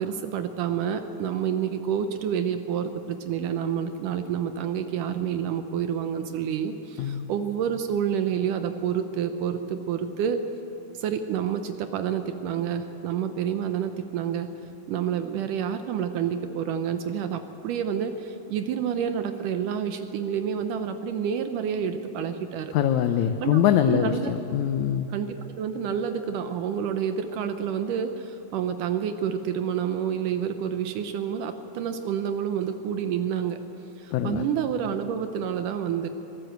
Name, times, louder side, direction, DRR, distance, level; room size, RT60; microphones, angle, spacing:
voice 1, 0.0-10.4 10.9-14.5 14.9-22.7 23.4-23.6 23.9-24.3 25.1-33.6 34.0-36.1, right 8 dB, 75° right, 8 dB, 2.3 m, -28 dB
voice 2, 7.0-7.3 22.7-25.1 34.1-34.5, left 10 dB, 70° left, 7 dB, 1.9 m, -23 dB
25.0 x 18.0 x 8.0 m, 2.9 s
omnidirectional pair, 3.9 m